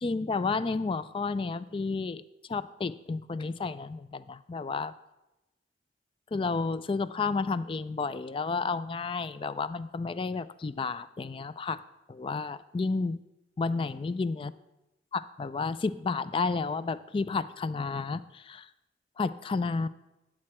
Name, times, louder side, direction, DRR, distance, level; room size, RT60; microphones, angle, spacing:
voice 1, 0.0-2.2 2.5-4.9 6.3-11.8 12.1-13.2 13.6-14.5 15.1-18.7 19.2-19.9, left 4 dB, 30° left, 15 dB, 0.3 m, -31 dB
10.5 x 7.5 x 4.3 m, 0.97 s
head